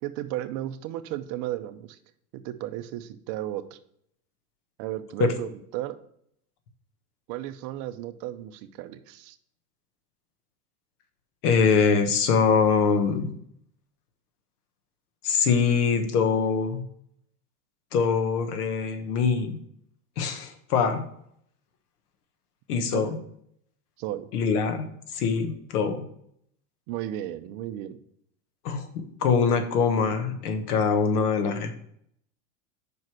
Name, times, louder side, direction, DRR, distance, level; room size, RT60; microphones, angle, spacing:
voice 1, 0.0-2.0 2.3-3.8 4.8-6.0 7.3-9.4 22.8-23.2 24.0-24.3 26.9-28.0, right 13 dB, 45° right, 10 dB, 0.6 m, -34 dB
voice 2, 11.4-13.3 15.2-16.8 17.9-19.6 20.2-21.0 22.7-23.2 24.3-26.0 28.6-31.7, left 5 dB, 80° left, 7 dB, 1.3 m, -23 dB
5.3 x 4.7 x 6.1 m, 0.70 s
supercardioid pair, 140°, 45 cm